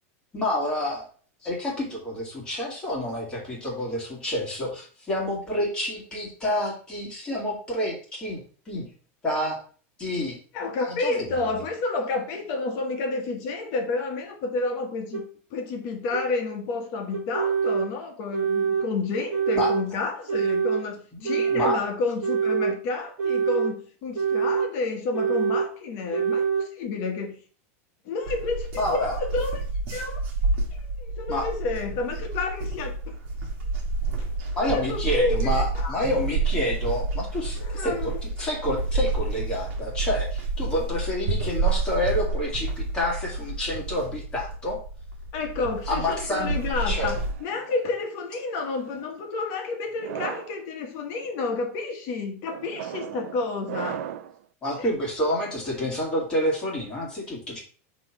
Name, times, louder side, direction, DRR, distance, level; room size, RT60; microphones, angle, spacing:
voice 1, 0.3-1.1 1.4-8.9 9.2-9.6 10.0-10.4 10.9-11.3 19.6-19.7 21.1-21.8 28.8-29.2 31.3-31.5 34.6-44.8 45.9-46.6 46.9-47.1 54.6-57.6, left 1 dB, 10° left, 1.9 m, -28 dB
voice 2, 10.5-15.2 15.5-27.4 28.0-29.6 29.9-30.2 31.0-33.1 34.2-34.3 34.6-36.0 37.5-38.1 45.3-47.1 47.4-54.0 54.8-54.9, left 3 dB, 35° left, 1.2 m, -30 dB
sound 1, 15.1-15.2 16.1-16.2 17.1-17.9 18.3-18.9 19.3-19.9 20.3-20.8 21.2-21.8 22.2-22.8 23.2-23.7 24.1-24.7 25.1-25.7 26.1-26.7, right 6 dB, 25° right, 1.7 m, -25 dB
sound 2, 28.3-47.3, right 3 dB, 50° right, 1.5 m, -29 dB
sound 3, 46.5-47.9 48.7-49.1 49.9-50.6 51.2-51.6 52.5-54.4, right 10 dB, 70° right, 0.5 m, -37 dB
6.0 x 3.1 x 5.8 m
supercardioid pair, 180°, 8 cm